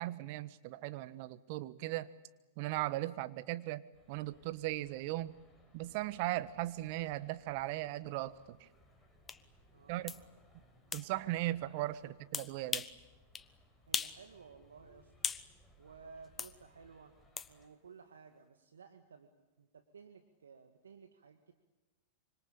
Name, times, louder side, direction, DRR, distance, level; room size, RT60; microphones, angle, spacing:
voice 1, 0.0-2.1 2.6-5.3 5.7-8.7 9.9-10.1 10.9-12.9, right 16 dB, 55° right, 15 dB, 1.3 m, -38 dB
sound 1, 3.9-17.7, equal, 5° left, 7.3 m, -66 dB
sound 2, 9.3-9.4 10.1-10.2 10.9-11.1 12.3-13.0 13.3-13.5 13.9-14.2 14.5-15.5 16.4-16.5 17.4-17.5, left 6 dB, 20° left, 1.2 m, -38 dB
voice 2, 9.7-10.2 12.0-12.1 13.9-15.1 15.8-17.2 17.5-19.3 19.6-21.5, right 5 dB, 80° right, 7 dB, 1.9 m, -56 dB
26.0 x 25.5 x 8.7 m, 1.1 s
hypercardioid pair, 100°, 0 cm